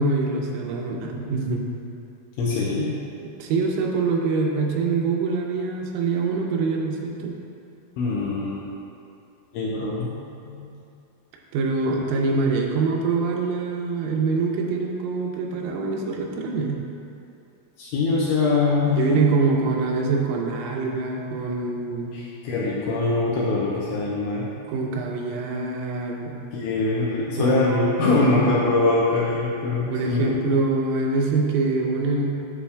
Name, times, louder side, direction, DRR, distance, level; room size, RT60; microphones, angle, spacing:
voice 1, 0.0-1.7 3.2-7.4 11.5-16.8 19.0-22.1 24.7-26.4 27.4-28.5 29.9-32.3, right 3 dB, 85° right, 0 dB, 3.3 m, -24 dB
voice 2, 2.4-2.9 8.0-8.7 9.5-10.1 10.4-10.8 17.8-19.1 22.1-24.5 26.5-30.4, left 3 dB, 85° left, -6 dB, 2.7 m, -23 dB
9.8 x 7.1 x 2.3 m, 2.6 s
omnidirectional pair, 6.0 m